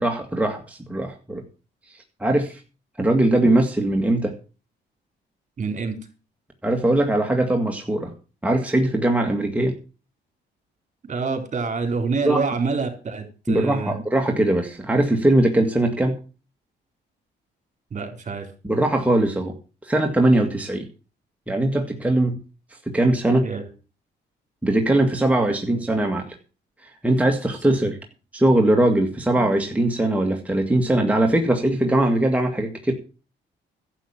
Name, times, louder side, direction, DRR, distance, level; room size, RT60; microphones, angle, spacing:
voice 1, 0.0-1.4 1.9-2.6 3.0-4.3 6.6-8.1 8.4-9.7 12.2-12.4 13.5-16.2 18.6-19.5 19.8-20.9 21.5-22.4 22.9-23.5 24.6-26.4 26.8-28.0 28.3-32.9, right 1 dB, 5° right, 2 dB, 2.0 m, -21 dB
voice 2, 5.6-6.0 9.2-9.3 11.1-13.9 17.9-18.5 23.4-23.7 25.4-25.8, right 4 dB, 40° right, 5 dB, 4.0 m, -27 dB
11.5 x 8.4 x 7.3 m, 0.35 s
cardioid pair, 90°, 20 cm